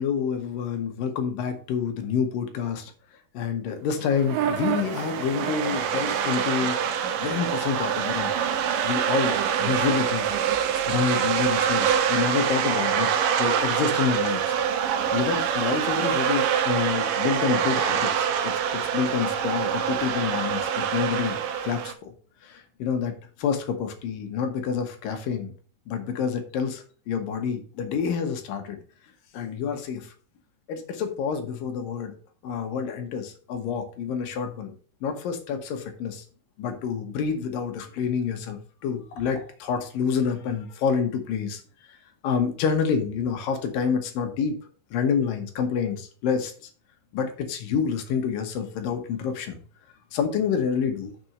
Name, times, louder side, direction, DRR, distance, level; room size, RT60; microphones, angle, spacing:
voice 1, 0.0-2.9 3.3-6.8 7.2-8.3 8.8-10.3 10.9-13.1 13.4-14.6 15.1-22.1 22.4-25.5 25.9-28.8 29.3-30.1 30.7-32.2 32.4-34.7 35.0-36.2 36.6-41.6 42.2-44.6 44.9-46.5 47.1-49.6 50.1-51.1, left 6 dB, 70° left, 5 dB, 2.7 m, -28 dB
sound 1, 4.0-21.9, right 8 dB, 75° right, 2.1 m, -25 dB
6.8 x 4.4 x 6.5 m, 0.41 s
omnidirectional pair, 4.4 m